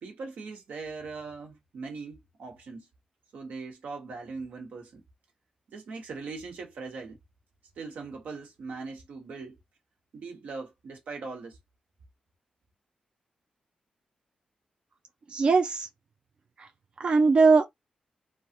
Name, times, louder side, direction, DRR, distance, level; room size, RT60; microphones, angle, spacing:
voice 1, 0.0-2.9 3.3-5.0 5.7-7.2 7.8-9.6 10.1-11.6, right 4 dB, 85° right, 1.2 m, -40 dB
voice 2, 15.3-15.9 16.6-16.7 17.0-17.7, right 4 dB, 40° right, 0.4 m, -20 dB
3.3 x 2.3 x 2.9 m
wide cardioid pair, 170°, 3 cm